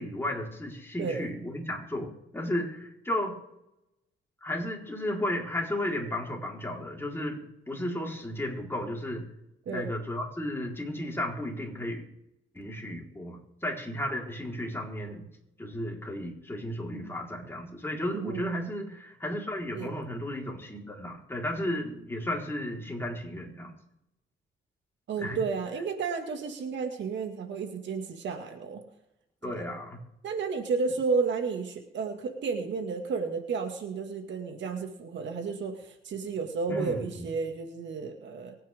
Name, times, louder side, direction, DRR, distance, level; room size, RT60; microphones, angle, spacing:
voice 1, 0.0-3.3 4.4-7.4 7.7-9.3 9.7-12.0 12.5-15.3 15.6-23.7 25.2-25.4 29.4-30.0 36.7-37.3, left 1 dB, 10° left, -1 dB, 4.2 m, -34 dB
voice 2, 1.0-1.3 9.7-9.9 18.1-18.7 19.7-19.9 25.1-28.8 29.4-29.7 30.2-38.6, right 5 dB, 65° right, 5 dB, 2.1 m, -32 dB
24.5 x 9.4 x 3.6 m, 0.86 s
cardioid pair, 90°, 20 cm